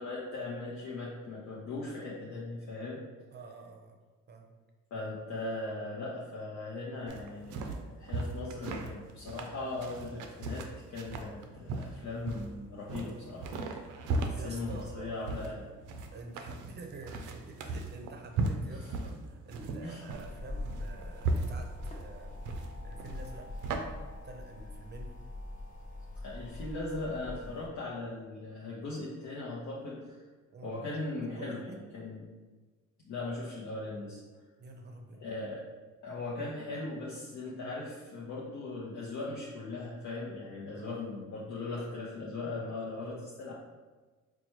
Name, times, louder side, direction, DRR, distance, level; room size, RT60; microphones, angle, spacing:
voice 1, 0.0-3.0 4.9-13.5 14.0-15.7 18.6-18.9 19.8-20.0 26.2-30.2 30.6-32.3 33.0-34.2 35.1-35.6 36.0-43.6, left 2 dB, 65° left, -5 dB, 0.7 m, -39 dB
voice 2, 3.3-4.0 4.3-4.5 14.1-15.1 16.1-23.6 24.1-25.2 30.5-30.8 31.2-31.8 34.6-35.2 40.7-41.1, right 3 dB, 35° right, 3 dB, 0.6 m, -48 dB
sound 1, 7.1-23.8, right 3 dB, 85° right, 0.5 m, -37 dB
sound 2, 20.1-27.7, left 2 dB, 25° left, 0.7 m, -43 dB
4.2 x 2.3 x 3.0 m, 1.3 s
cardioid pair, 90°, 30 cm